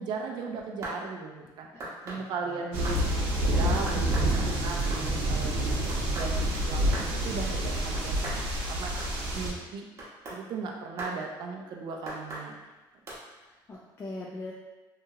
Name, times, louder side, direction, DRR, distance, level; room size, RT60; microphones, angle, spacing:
voice 1, 0.0-3.0 3.3-8.4 8.7-8.9 9.3-9.9 10.3-12.6, right 4 dB, 55° right, 1 dB, 0.4 m, -37 dB
sound 1, 0.6-1.0 1.8-2.2 2.8-3.0 3.9-4.3 4.7-5.0 5.9-6.3 6.9-7.1 7.9-8.4 9.0-9.1 10.0-10.4 11.0-11.2 12.1-12.5 13.1-13.2, right 1 dB, 35° right, 0.8 m, -38 dB
voice 2, 1.7-2.6 13.4-14.5, left 2 dB, 25° left, -5 dB, 0.3 m, -42 dB
sound 2, 2.7-9.5, right 1 dB, 85° right, 0.7 m, -28 dB
2.8 x 2.7 x 2.3 m, 1.1 s
cardioid pair, 140°, 9 cm